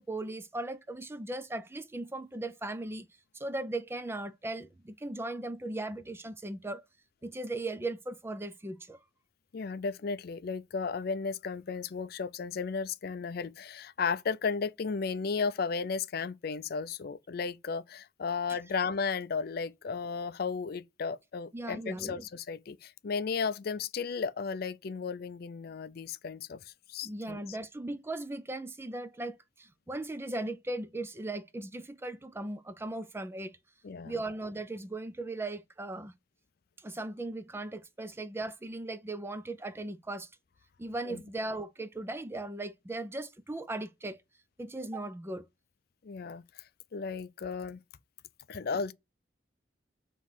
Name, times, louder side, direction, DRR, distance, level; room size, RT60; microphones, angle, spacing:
voice 1, 0.0-3.1 3.3-6.8 7.2-9.0 18.5-18.6 21.5-22.2 27.0-33.6 34.0-36.1 36.8-40.3 40.8-44.2 44.6-45.5, right 2 dB, 15° right, 0.4 m, -38 dB
voice 2, 9.5-27.6 33.8-34.2 41.1-41.2 46.0-47.8 48.5-48.9, left 5 dB, 55° left, 0.4 m, -34 dB
6.1 x 3.1 x 5.6 m
head